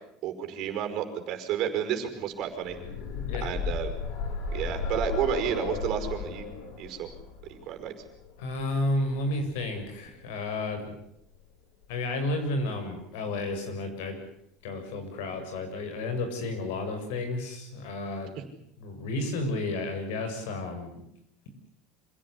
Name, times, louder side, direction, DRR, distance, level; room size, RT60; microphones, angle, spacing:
voice 1, 0.2-2.8 3.4-3.9 4.5-6.5 6.8-7.2 7.5-7.9, right 9 dB, 50° right, 6 dB, 5.3 m, -31 dB
sound 1, 2.4-10.2 11.3-11.4 11.8-11.9, left 5 dB, 70° left, 5.9 m, -35 dB
voice 2, 3.1-3.5 8.4-11.0 11.9-14.2 14.6-18.3 18.8-20.9, left 2 dB, 85° left, 6 dB, 7.3 m, -32 dB
26.5 x 17.0 x 9.9 m, 0.76 s
cardioid pair, 160°, 0 cm